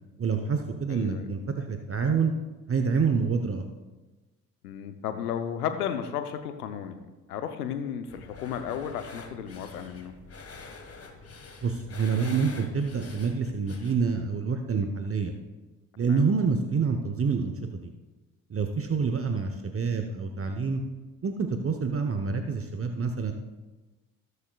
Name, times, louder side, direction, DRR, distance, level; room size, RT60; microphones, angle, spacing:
voice 1, 0.2-2.3 2.7-3.6 11.6-15.3 16.0-17.9 18.5-20.8 21.2-23.3, right 5 dB, 30° right, 6 dB, 0.9 m, -27 dB
voice 2, 0.9-1.2 4.6-7.0 7.3-10.1 16.1-16.2, left 8 dB, 85° left, 9 dB, 0.8 m, -33 dB
sound 1, 8.1-14.0, left 4 dB, 30° left, 1.6 m, -46 dB
19.5 x 6.7 x 2.4 m, 1.2 s
hypercardioid pair, 45°, 44 cm